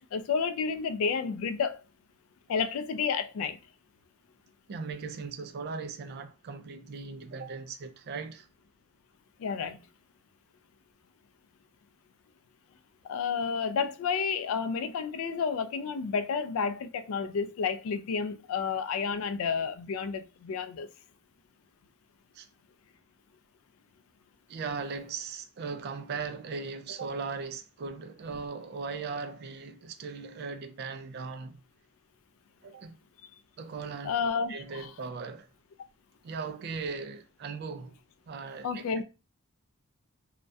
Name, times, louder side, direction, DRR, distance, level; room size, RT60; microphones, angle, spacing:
voice 1, 0.1-1.8 2.5-3.6 9.4-9.8 13.0-20.9 34.0-34.9 38.6-39.0, left 5 dB, 70° left, 0.3 m, -31 dB
voice 2, 4.7-8.5 22.3-22.5 24.5-31.6 32.6-33.0 33.6-34.1 34.5-35.5 36.2-38.0 38.3-39.0, right 4 dB, 50° right, 0.3 m, -38 dB
2.3 x 2.1 x 2.5 m
head